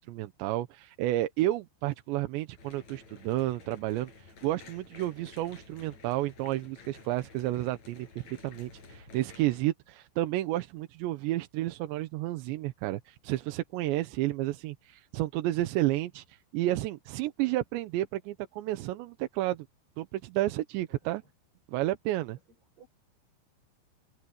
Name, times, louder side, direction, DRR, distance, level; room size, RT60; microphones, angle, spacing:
voice 1, 0.0-19.7 20.0-21.2 21.7-22.4, right 15 dB, 75° right, 3.0 m, -31 dB
sound 1, 2.6-9.6, left 4 dB, 35° left, 7.5 m, -52 dB
voice 2, 20.9-21.3 22.5-22.9, right 5 dB, 55° right, 9.3 m, -60 dB
omnidirectional pair, 5.5 m